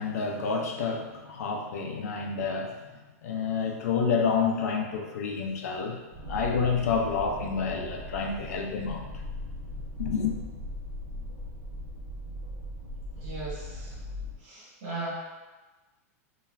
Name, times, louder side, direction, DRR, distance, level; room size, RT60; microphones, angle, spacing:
voice 1, 0.0-2.7 3.2-6.0 6.3-9.1 10.0-10.3, left 5 dB, 85° left, 2 dB, 0.4 m, -29 dB
sound 1, 6.1-14.4, left 1 dB, 60° right, 0.8 m, -39 dB
voice 2, 13.1-14.0 14.4-15.1, right 3 dB, 40° right, -7 dB, 1.2 m, -38 dB
2.3 x 2.3 x 3.1 m, 1.2 s
supercardioid pair, 175°, 8 cm